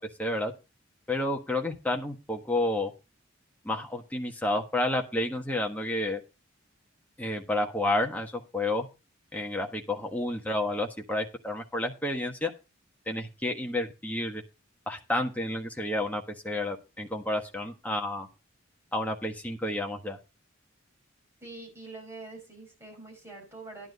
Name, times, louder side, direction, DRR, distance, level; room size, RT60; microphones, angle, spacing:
voice 1, 0.2-0.5 1.1-2.9 3.6-6.2 7.2-8.9 9.3-12.5 13.1-14.4 14.9-18.3 18.9-20.2, left 1 dB, 10° left, 2 dB, 1.4 m, -30 dB
voice 2, 21.4-23.9, right 2 dB, 10° right, -2 dB, 5.1 m, -45 dB
11.0 x 8.9 x 4.0 m, 0.28 s
head